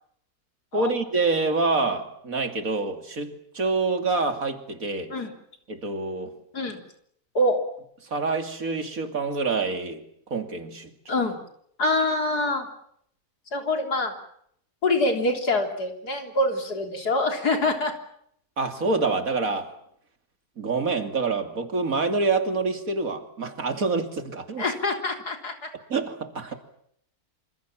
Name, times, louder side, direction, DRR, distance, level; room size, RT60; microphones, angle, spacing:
voice 1, 0.7-5.2 5.7-6.4 8.1-10.0 10.3-11.1 18.6-19.7 20.6-24.6 25.9-26.5, right 3 dB, 60° right, 7 dB, 3.0 m, -26 dB
voice 2, 11.1-11.4 11.8-12.7 13.5-14.1 14.8-17.9 24.6-25.7, left 2 dB, 90° left, 5 dB, 4.0 m, -25 dB
27.0 x 26.5 x 7.4 m, 0.70 s
omnidirectional pair, 1.6 m